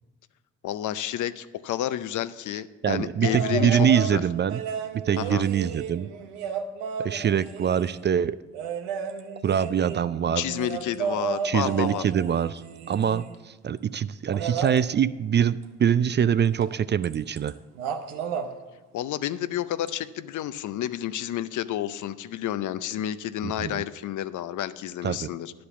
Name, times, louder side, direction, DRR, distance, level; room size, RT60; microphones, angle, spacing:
voice 1, 0.6-4.2 5.2-5.5 10.4-12.0 18.9-25.5, left 11 dB, 60° left, 14 dB, 0.6 m, -30 dB
voice 2, 2.8-4.6 4.9-6.1 7.0-8.4 9.4-10.4 11.4-12.6 12.9-17.5 23.4-23.8 25.0-25.3, right 8 dB, 35° right, 16 dB, 0.4 m, -24 dB
sound 1, 3.2-4.1 4.5-8.0 8.5-13.4 14.3-14.8 16.6-16.7 17.0-17.5 17.8-18.5 19.9-20.0, right 7 dB, 85° right, 0.7 m, -33 dB
11.0 x 5.2 x 6.9 m, 1.3 s
hypercardioid pair, 45°, 33 cm